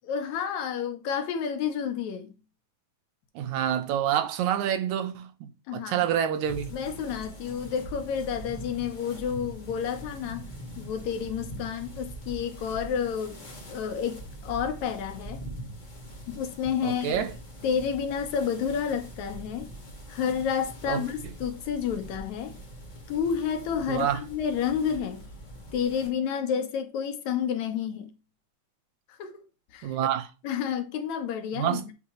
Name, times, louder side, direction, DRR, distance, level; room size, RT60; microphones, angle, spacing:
voice 1, 0.0-2.3 5.7-6.1 6.7-13.4 13.7-15.4 16.3-17.2 17.6-19.7 20.1-22.6 23.1-25.3 25.7-28.1 29.1-29.4 29.7-30.0 30.4-31.9, left 7 dB, 80° left, 2.3 m, -30 dB
voice 2, 3.4-6.7 16.8-17.3 20.9-21.1 23.9-24.2 29.8-30.3 31.6-31.8, right 10 dB, 85° right, 2.2 m, -27 dB
sound 1, 6.4-26.1, right 1 dB, 40° left, 0.6 m, -43 dB
8.5 x 2.9 x 4.3 m
omnidirectional pair, 3.3 m